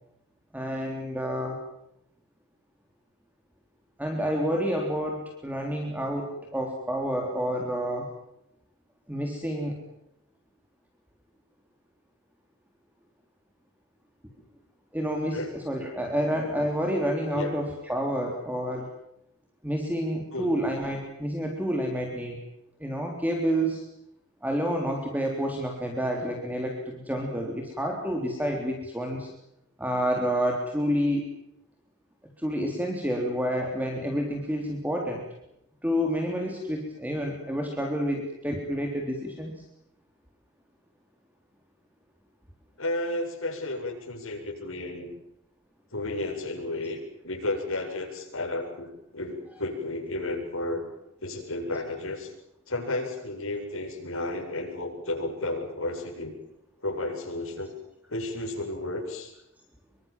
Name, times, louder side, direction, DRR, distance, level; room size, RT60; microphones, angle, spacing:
voice 1, 0.5-1.6 4.0-8.1 9.1-9.8 14.9-18.9 19.6-22.4 22.8-23.8 24.4-29.3 29.8-31.3 32.4-35.2 35.8-39.6, equal, 10° right, 1 dB, 3.6 m, -29 dB
voice 2, 42.8-45.1 45.9-50.8 51.2-52.3 52.7-56.3 56.8-57.7 58.1-59.3, left 2 dB, 70° left, 1 dB, 7.8 m, -32 dB
26.5 x 24.0 x 7.5 m, 0.80 s
head